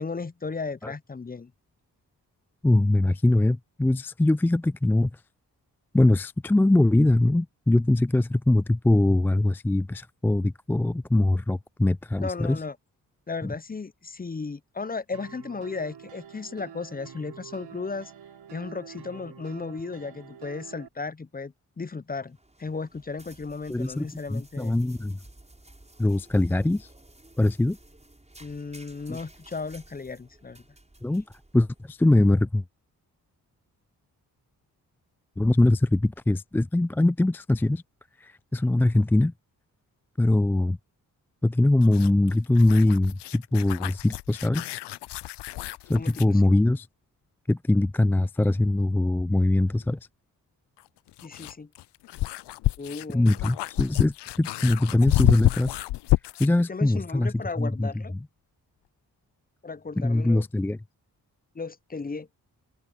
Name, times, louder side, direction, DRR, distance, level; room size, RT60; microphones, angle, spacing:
voice 1, 0.0-1.5 12.2-12.8 13.3-18.1 18.5-24.8 28.4-30.6 46.0-46.4 51.2-51.7 52.8-53.3 56.7-58.1 59.6-60.5 61.5-62.3, left 4 dB, 20° left, 0.7 m, -35 dB
voice 2, 2.6-5.1 5.9-12.6 13.4-13.5 23.7-25.2 26.0-26.9 27.4-27.8 29.1-29.2 31.0-31.2 31.5-32.6 35.4-37.8 38.2-39.3 40.2-40.8 41.4-44.7 45.9-46.9 47.5-50.0 53.1-55.8 56.4-57.9 60.0-60.8, left 2 dB, 5° left, 0.3 m, -22 dB
sound 1, 15.1-20.9, right 8 dB, 75° right, 7.9 m, -46 dB
sound 2, 22.2-32.2, right 1 dB, 15° right, 6.7 m, -54 dB
sound 3, 41.8-46.3 48.7-48.8 50.8-56.6, left 17 dB, 80° left, 0.7 m, -29 dB
open air
supercardioid pair, 40°, 41 cm